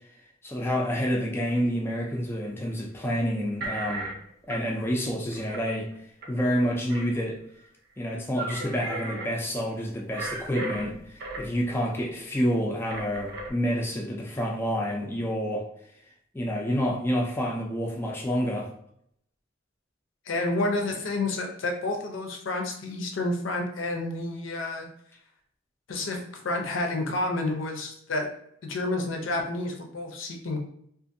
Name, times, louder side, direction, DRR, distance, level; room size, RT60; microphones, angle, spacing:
voice 1, 0.4-4.1 4.5-5.9 6.3-7.4 8.0-15.7 16.3-18.7, equal, 10° left, -1 dB, 0.3 m, -28 dB
sound 1, 2.1-2.7 3.6-4.2 4.5-4.6 5.3-5.9 6.2-6.3 6.7-7.2 8.0-8.1 8.4-9.3 10.1-11.6 12.9-13.5, right 2 dB, 55° right, 0.6 m, -35 dB
voice 2, 20.3-24.9 25.9-26.2 26.4-28.2 28.6-30.6, left 2 dB, 75° left, 3 dB, 0.6 m, -29 dB
2.5 x 2.4 x 2.6 m, 0.69 s
head